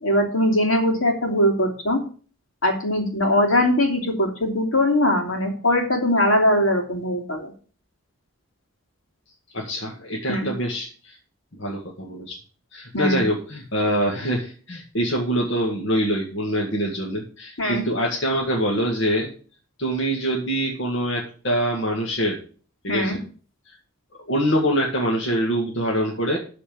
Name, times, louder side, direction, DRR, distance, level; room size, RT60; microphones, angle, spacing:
voice 1, 0.0-2.0 2.6-7.5 10.3-10.5 12.9-13.3 17.6-17.8 22.9-23.2, left 1 dB, 80° left, 3 dB, 2.9 m, -21 dB
voice 2, 9.5-11.2 11.6-12.4 12.7-19.3 19.8-22.4 22.8-23.2 24.3-26.4, equal, 60° left, -1 dB, 1.9 m, -24 dB
12.5 x 4.3 x 7.0 m, 0.41 s
head